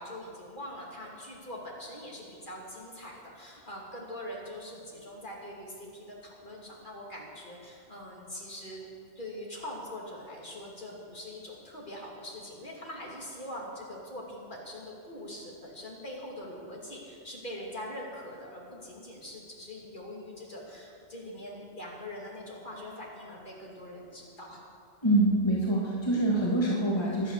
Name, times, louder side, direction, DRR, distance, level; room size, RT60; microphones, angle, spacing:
voice 1, 0.0-8.9 9.1-24.6, left 1 dB, 45° left, -3 dB, 3.0 m, -43 dB
voice 2, 25.0-27.3, right 1 dB, 25° left, -4 dB, 2.0 m, -25 dB
23.0 x 8.7 x 6.7 m, 2.3 s
omnidirectional pair, 1.2 m